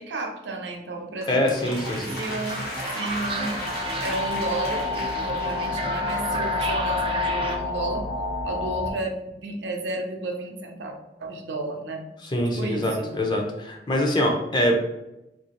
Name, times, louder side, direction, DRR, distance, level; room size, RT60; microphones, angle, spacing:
voice 1, 0.0-1.6 2.1-2.7 2.9-3.6 4.0-8.1 8.4-12.0 12.6-13.1, right 2 dB, 85° right, 3 dB, 0.5 m, -32 dB
sound 1, 1.2-6.4, left 2 dB, 60° left, 0.8 m, -37 dB
voice 2, 1.3-2.1 12.3-14.7, left 1 dB, 25° left, 2 dB, 0.5 m, -24 dB
sound 2, 1.6-7.6, right 3 dB, 30° right, 0.3 m, -32 dB
sound 3, 2.2-8.9, left 4 dB, 75° left, 1.0 m, -30 dB
2.8 x 2.6 x 2.8 m, 0.92 s
head